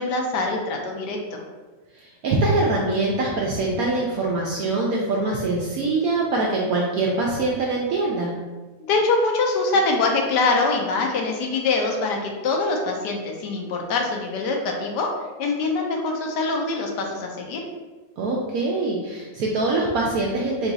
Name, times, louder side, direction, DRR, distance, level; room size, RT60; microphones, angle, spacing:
voice 1, 0.0-1.4 8.8-15.1 15.4-17.6, left 3 dB, 75° left, 1 dB, 1.1 m, -24 dB
voice 2, 1.9-8.3 18.2-20.7, right 2 dB, 70° right, -3 dB, 0.8 m, -23 dB
3.9 x 2.3 x 3.9 m, 1.3 s
omnidirectional pair, 2.0 m